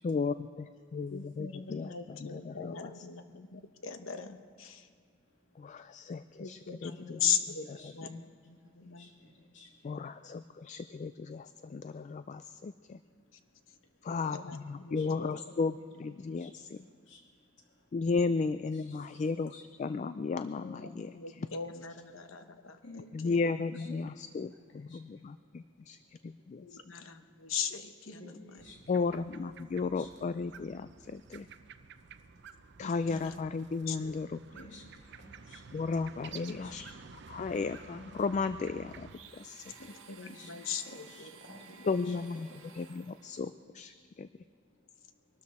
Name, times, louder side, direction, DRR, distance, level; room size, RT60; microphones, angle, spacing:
voice 1, 0.0-0.7 0.9-2.9 5.6-7.2 8.1-8.2 9.8-13.0 14.0-16.8 17.9-21.5 23.1-26.8 28.9-31.5 32.8-34.4 35.7-39.7 41.9-42.5 42.7-44.3, left 4 dB, 35° left, 12 dB, 0.3 m, -35 dB
voice 2, 1.1-4.9 6.4-9.1 13.3-13.4 13.7-13.8 14.1-15.5 16.3-16.5 20.6-23.4 26.6-28.6 32.8-33.4 33.6-34.2 34.6-34.8 39.9-41.3 41.8-41.9, left 7 dB, 90° left, 8 dB, 1.0 m, -39 dB
voice 3, 6.9-7.4 7.8-8.2 9.0-9.7 15.0-15.1 16.4-16.5 17.1-17.2 18.2-18.3 18.9-19.0 19.5-19.6 22.8-23.4 24.1-24.3 24.9-25.0 28.1-29.1 29.6-30.1 34.5-34.8 35.2-35.6 36.3-36.7 40.3-40.5 40.9-42.1, left 2 dB, 65° left, 0 dB, 2.6 m, -52 dB
sound 1, 28.6-39.2, right 6 dB, 60° right, 0.6 m, -52 dB
Domestic sounds home sounds, 39.1-43.5, right 6 dB, 85° right, 1.4 m, -55 dB
22.5 x 12.5 x 4.2 m, 2.1 s
head